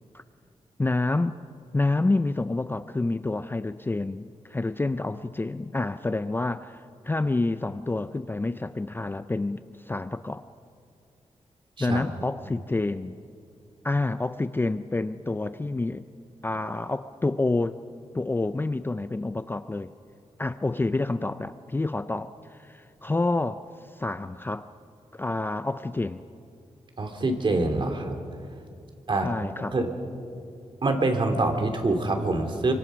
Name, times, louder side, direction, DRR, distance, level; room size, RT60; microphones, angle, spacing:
voice 1, 0.8-1.3 1.7-10.4 11.8-13.2 13.8-16.0 16.4-17.8 18.1-19.9 20.4-23.6 23.9-24.7 25.1-26.2 29.2-29.7, left 2 dB, 15° left, 12 dB, 0.5 m, -28 dB
voice 2, 27.0-28.1 29.1-29.3 29.7-29.9 30.8-32.7, right 2 dB, 40° right, 4 dB, 2.9 m, -25 dB
26.5 x 25.0 x 6.2 m, 2.4 s
wide cardioid pair, 125°, 12 cm